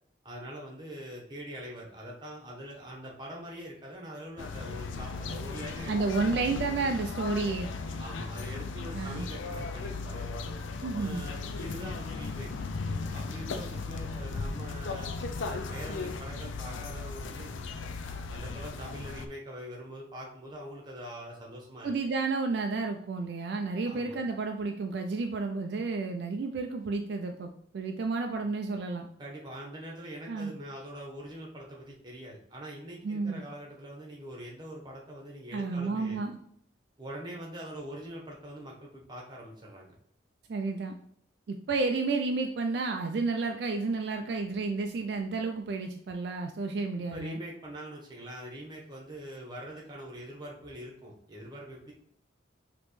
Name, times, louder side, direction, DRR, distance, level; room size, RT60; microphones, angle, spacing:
voice 1, 0.2-6.9 8.0-10.3 11.0-12.5 12.9-17.8 18.3-21.9 23.8-24.2 29.2-36.2 37.0-39.9 47.0-51.9, right 1 dB, 25° right, -2 dB, 1.0 m, -43 dB
sound 1, 4.4-19.3, left 4 dB, 85° left, 0.4 m, -37 dB
voice 2, 5.9-7.7 8.9-9.3 10.8-11.3 21.8-29.1 30.3-30.5 33.0-33.4 35.5-36.3 40.5-40.9 41.5-47.4, right 3 dB, 60° right, 4 dB, 0.3 m, -31 dB
5.2 x 2.9 x 3.1 m, 0.67 s
head